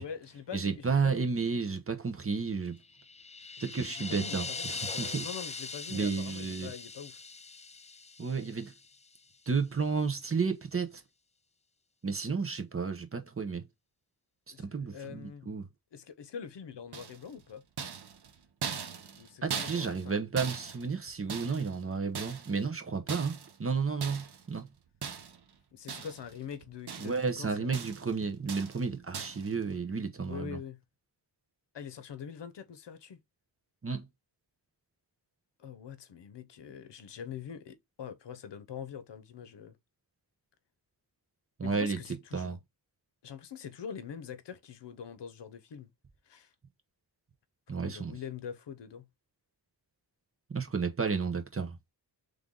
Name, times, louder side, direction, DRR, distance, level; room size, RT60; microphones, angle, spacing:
voice 1, 0.0-1.3 3.6-7.2 14.5-15.6 15.9-17.6 19.2-20.2 25.7-27.8 30.2-30.8 31.7-33.2 35.6-39.8 41.6-42.6 43.2-45.9 46.3-46.5 47.7-49.1, left 7 dB, 80° left, 0.8 m, -44 dB
voice 2, 0.5-2.8 3.6-5.3 5.9-6.7 8.2-8.7 9.5-11.0 12.0-13.7 14.6-15.7 19.4-24.7 27.0-30.6 33.8-34.1 41.6-42.0 42.3-42.6 47.7-48.2 50.5-51.8, right 5 dB, 30° right, 0.9 m, -32 dB
sound 1, 2.8-9.0, left 4 dB, 20° left, 0.3 m, -41 dB
sound 2, 16.9-17.4 17.8-20.1 20.4-21.8 22.1-22.7 23.1-23.6 24.0-24.4 25.0-25.5 25.9-26.4 26.6-27.3 27.7-28.1 28.5-28.8 29.1-29.5, right 6 dB, 70° right, 0.9 m, -40 dB
3.7 x 3.4 x 3.8 m
wide cardioid pair, 110°, 42 cm